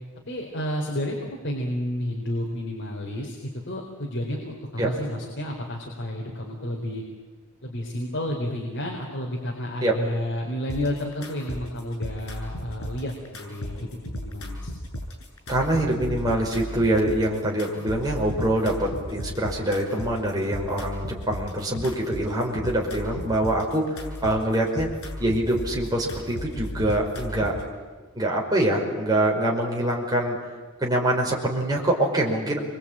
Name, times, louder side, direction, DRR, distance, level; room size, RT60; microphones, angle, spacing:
voice 1, 0.3-7.0 7.6-14.7 32.5-32.6, left 1 dB, 55° left, -1 dB, 4.3 m, -31 dB
sound 1, 10.7-27.7, left 1 dB, 80° left, 7.3 m, -36 dB
voice 2, 15.5-24.0 24.2-24.9 25.2-27.6 28.2-30.4 30.8-32.6, right 1 dB, 20° right, -2 dB, 5.5 m, -24 dB
28.0 x 23.5 x 9.0 m, 1.3 s
head